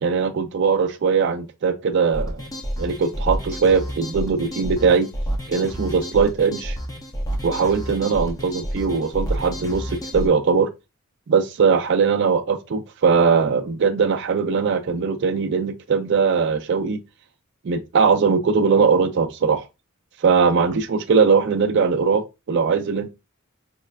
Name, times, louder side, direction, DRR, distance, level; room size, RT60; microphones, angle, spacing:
voice 1, 0.0-2.4 2.8-5.1 5.5-6.8 7.4-10.7 11.3-17.0 17.6-19.6 20.2-23.1, right 5 dB, 50° right, 0.4 m, -20 dB
sound 1, 2.1-10.3, equal, 15° left, 0.4 m, -30 dB
4.3 x 2.1 x 2.3 m
head